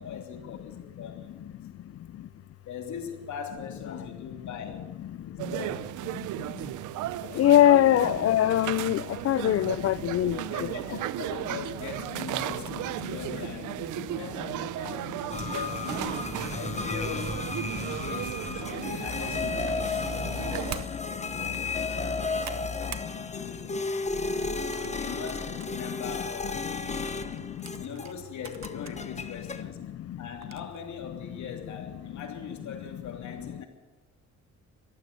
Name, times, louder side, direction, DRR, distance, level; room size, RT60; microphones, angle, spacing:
voice 1, 0.0-1.4 2.6-4.9 5.2-5.9 7.2-7.5 8.9-9.0 10.5-17.5 18.0-23.0 23.3-23.8 24.6-27.1 27.8-29.8 30.2-33.7, left 7 dB, 70° left, 3.2 m, -41 dB
sound 1, 5.4-20.9, right 14 dB, 80° right, 0.6 m, -35 dB
voice 2, 7.4-10.7 27.5-27.6 30.1-30.2, left 12 dB, 50° left, 0.5 m, -22 dB
sound 2, 15.3-28.2 28.4-29.6, left 3 dB, 25° left, 1.2 m, -33 dB
sound 3, 20.7-20.9 21.4-21.6 22.0-23.1 23.5-23.8 24.4-25.7 26.2-26.3 27.2-29.0 29.5-29.6 30.4-30.8, right 10 dB, 60° right, 1.1 m, -44 dB
14.5 x 13.0 x 6.9 m
cardioid pair, 90°, 30 cm